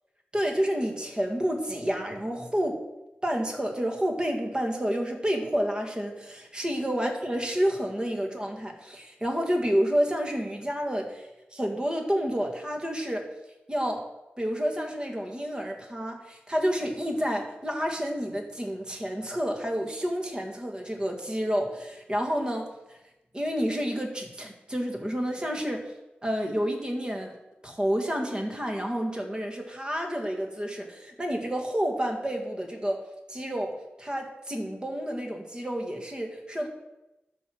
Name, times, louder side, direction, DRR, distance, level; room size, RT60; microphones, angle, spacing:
voice 1, 0.3-2.8 3.2-13.3 13.7-14.0 14.4-23.0 23.3-25.8 26.2-27.3 27.6-33.0 33.3-36.7, equal, 20° right, 2 dB, 1.9 m, -29 dB
12.0 x 4.7 x 6.4 m, 0.98 s
wide cardioid pair, 80°, 4 cm